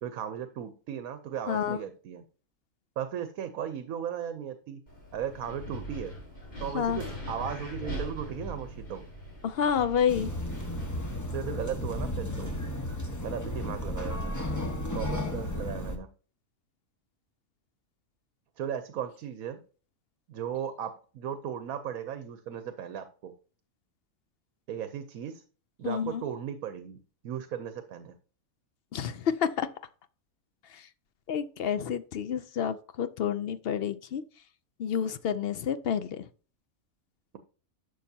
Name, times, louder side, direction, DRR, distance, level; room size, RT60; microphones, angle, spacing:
voice 1, 0.0-2.2 3.0-4.8 5.1-6.1 6.6-9.0 11.3-12.5 13.2-14.2 14.9-16.1 18.6-19.6 20.3-23.3 24.7-25.4 25.8-27.0 27.2-28.1, right 8 dB, 75° right, 1.2 m, -36 dB
voice 2, 1.5-1.8 6.7-7.0 9.4-10.3 25.8-26.2 28.9-29.7 30.7-30.8 31.3-34.2 34.8-36.3, left 8 dB, 60° left, 0.6 m, -29 dB
Wind, 4.9-11.7, equal, 35° left, 3.9 m, -41 dB
sound 1, 10.1-16.0, left 1 dB, 15° left, 1.0 m, -33 dB
11.5 x 6.5 x 2.8 m
omnidirectional pair, 1.5 m